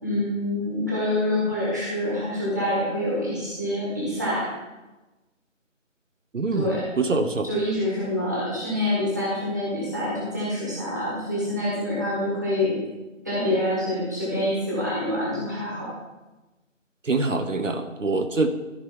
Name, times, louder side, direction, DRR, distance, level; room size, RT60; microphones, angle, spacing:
voice 1, 0.0-4.5 6.5-6.8 7.4-12.8 13.2-15.9, left 1 dB, 15° right, -7 dB, 1.6 m, -26 dB
voice 2, 6.3-7.5 17.0-18.5, right 3 dB, 75° right, 6 dB, 1.0 m, -25 dB
13.5 x 5.2 x 3.7 m, 1.1 s
figure-of-eight pair, 175°, 39 cm